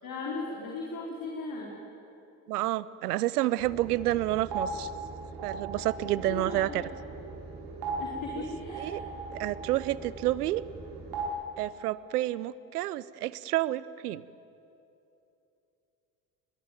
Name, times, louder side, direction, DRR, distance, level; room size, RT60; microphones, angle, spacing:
voice 1, 0.0-1.7 6.2-6.8 8.0-8.9, left 3 dB, 45° left, -2 dB, 4.3 m, -37 dB
voice 2, 2.5-4.9 5.4-6.8 8.8-9.0 9.3-10.6 11.6-14.2, right 15 dB, 80° right, 20 dB, 0.8 m, -29 dB
sound 1, 3.6-11.3, right 3 dB, 55° right, 5.0 m, -38 dB
21.5 x 20.5 x 9.3 m, 2.8 s
hypercardioid pair, 65°, 46 cm